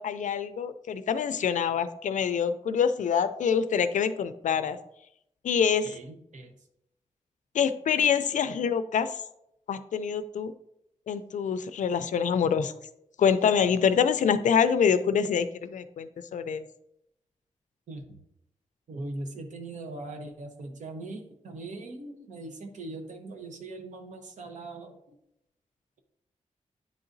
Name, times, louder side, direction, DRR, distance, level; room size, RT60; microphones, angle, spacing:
voice 1, 0.0-4.8 5.4-5.9 7.5-9.2 9.7-10.5 11.1-12.7 13.2-16.6, left 7 dB, 85° left, 12 dB, 0.4 m, -25 dB
voice 2, 5.8-6.5 17.9-18.2 18.9-25.1, right 2 dB, 85° right, 4 dB, 0.9 m, -40 dB
9.5 x 3.9 x 2.6 m, 0.80 s
wide cardioid pair, 130°, 12 cm